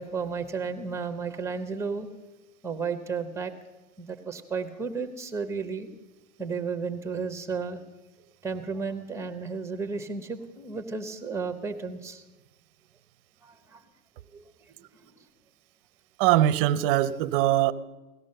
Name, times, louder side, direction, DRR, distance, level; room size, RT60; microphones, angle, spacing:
voice 1, 0.0-2.1 2.6-3.5 4.0-5.9 6.4-7.8 8.4-12.2 13.4-13.8 14.3-14.5, right 5 dB, 5° right, 0.9 m, -33 dB
voice 2, 16.2-17.7, right 13 dB, 40° right, 0.7 m, -22 dB
17.5 x 12.5 x 6.7 m
supercardioid pair, 150°, 43 cm